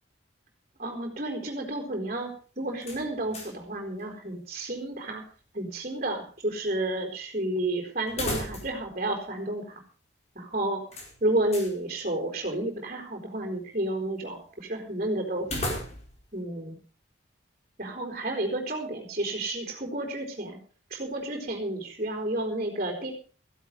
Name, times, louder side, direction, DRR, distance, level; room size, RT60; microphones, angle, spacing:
voice 1, 0.8-5.2 5.5-9.8 10.3-10.8 11.2-15.5 16.3-16.8 17.8-20.6 20.9-23.1, right 1 dB, 40° right, 1 dB, 4.3 m, -31 dB
sound 1, 2.8-3.7 4.0-4.1 8.1-8.9 9.2-9.3 10.9-11.8 15.4-16.3, left 1 dB, 35° left, 4.7 m, -35 dB
15.5 x 12.0 x 5.2 m, 0.39 s
head